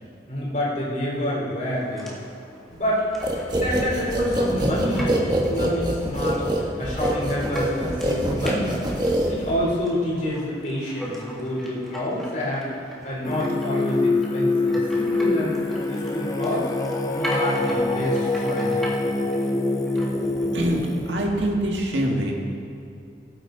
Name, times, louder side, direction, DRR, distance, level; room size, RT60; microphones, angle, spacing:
voice 1, 0.3-2.2 2.7-3.0 3.5-8.7 9.3-12.7 13.0-15.6 15.9-16.7 17.0-18.9, equal, 40° left, -5 dB, 3.4 m, -27 dB
sound 1, 1.7-21.4, equal, ahead, 1.7 m, -38 dB
sound 2, 3.2-9.7, equal, 25° right, 1.3 m, -25 dB
Singing, 13.2-21.1, left 2 dB, 20° left, 0.7 m, -25 dB
voice 2, 20.5-22.3, equal, 85° right, 0 dB, 1.8 m, -24 dB
17.5 x 8.8 x 3.9 m, 2.6 s
head